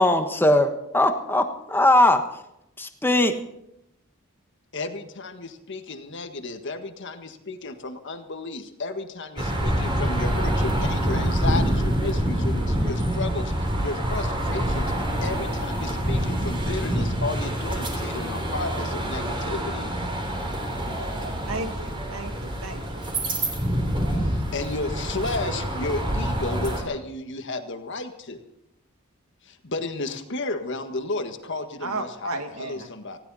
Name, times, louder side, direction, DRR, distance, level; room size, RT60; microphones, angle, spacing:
voice 1, 0.0-2.2 2.8-3.4, left 1 dB, 10° left, 7 dB, 1.3 m, -20 dB
voice 2, 4.7-19.9 24.2-28.4 29.4-33.2, left 3 dB, 60° left, 7 dB, 1.6 m, -33 dB
sound 1, 9.4-26.8, right 1 dB, 25° right, 3.3 m, -26 dB
voice 3, 21.5-23.1 31.8-32.9, right 2 dB, 85° right, 6 dB, 2.1 m, -34 dB
19.5 x 16.0 x 4.3 m, 0.82 s
head